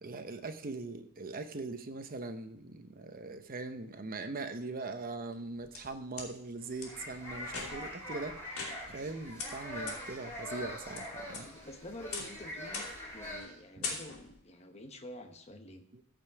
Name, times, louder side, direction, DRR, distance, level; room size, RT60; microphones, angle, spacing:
voice 1, 0.0-8.4 8.9-11.5 13.8-13.9 15.9-16.0, right 3 dB, 45° right, 8 dB, 0.9 m, -41 dB
sound 1, 5.3-6.3 6.8-6.9 7.4-8.0 8.5-9.1 9.4-9.5 9.9-10.0 10.5-11.0 11.3-11.7 12.1-12.4 12.7-13.1 13.4-13.5 13.8-14.4, left 4 dB, 90° left, 2.9 m, -41 dB
sound 2, 6.6-13.4, left 1 dB, 10° left, 3.6 m, -43 dB
voice 2, 11.3-12.9 13.1-15.8, left 1 dB, 30° left, 5 dB, 1.1 m, -48 dB
14.5 x 5.3 x 4.8 m, 0.69 s
head